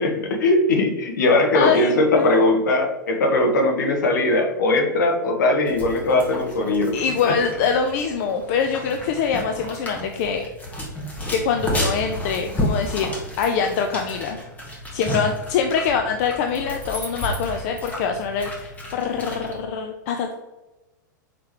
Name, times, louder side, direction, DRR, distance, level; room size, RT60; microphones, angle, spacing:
voice 1, 0.0-6.9 7.2-7.3, left 2 dB, 65° left, 3 dB, 1.0 m, -20 dB
voice 2, 1.5-2.5 6.9-10.5 11.3-14.4 14.9-20.3, left 6 dB, 50° left, 5 dB, 0.4 m, -24 dB
Dog Eating from Bowl, 5.6-19.6, equal, 15° left, 1.2 m, -32 dB
4.9 x 3.7 x 3.0 m, 1.1 s
hypercardioid pair, 100°, 11 cm